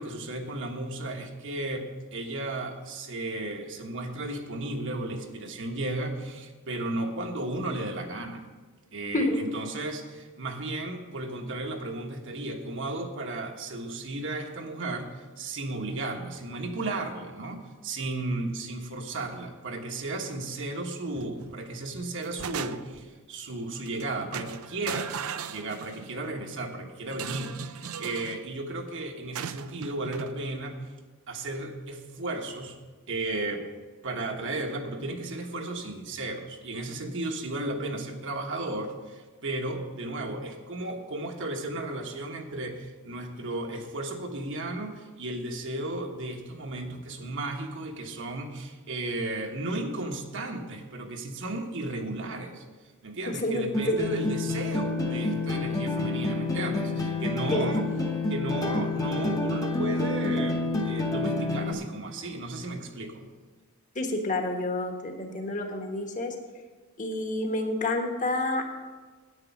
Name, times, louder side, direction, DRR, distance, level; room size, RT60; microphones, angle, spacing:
voice 1, 0.0-8.4 8.9-15.1 15.4-25.1 25.5-30.8 31.3-32.8 33.1-33.6 34.0-52.6 53.0-57.8 58.3-63.2, right 2 dB, 60° right, 3 dB, 1.4 m, -34 dB
voice 2, 9.1-9.5 53.3-54.0 57.5-57.7 63.9-66.3 67.0-68.7, left 1 dB, 35° left, 4 dB, 1.4 m, -29 dB
sound 1, 21.1-21.6 22.0-23.1 23.8-24.0 24.3-26.2 27.1-28.4 29.3-30.3, right 7 dB, 80° right, 0.5 m, -37 dB
sound 2, 53.7-61.7, left 2 dB, 15° left, 0.9 m, -28 dB
9.7 x 9.1 x 6.0 m, 1.4 s
head